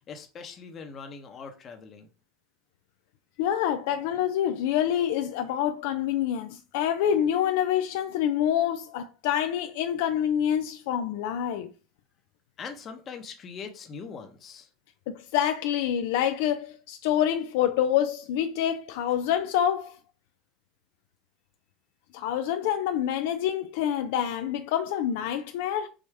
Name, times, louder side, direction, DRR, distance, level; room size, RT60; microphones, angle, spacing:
voice 1, 0.1-2.1 12.6-14.7, left 5 dB, 30° left, 0.9 m, -41 dB
voice 2, 3.4-11.7 15.1-20.0 22.1-25.9, left 10 dB, 70° left, 0.4 m, -27 dB
4.9 x 2.6 x 3.5 m
supercardioid pair, 135°, 0 cm